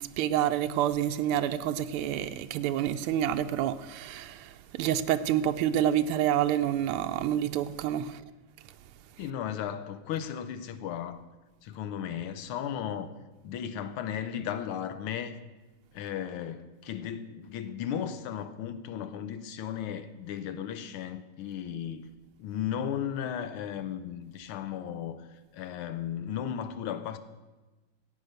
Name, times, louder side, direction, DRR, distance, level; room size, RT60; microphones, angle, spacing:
voice 1, 0.0-8.2, right 11 dB, 85° right, 1.5 m, -28 dB
voice 2, 9.2-11.2 11.6-13.1 13.4-15.4 15.9-22.1 22.4-25.3 25.5-27.2, left 9 dB, 80° left, 1.7 m, -35 dB
14.5 x 8.5 x 6.6 m
omnidirectional pair, 2.4 m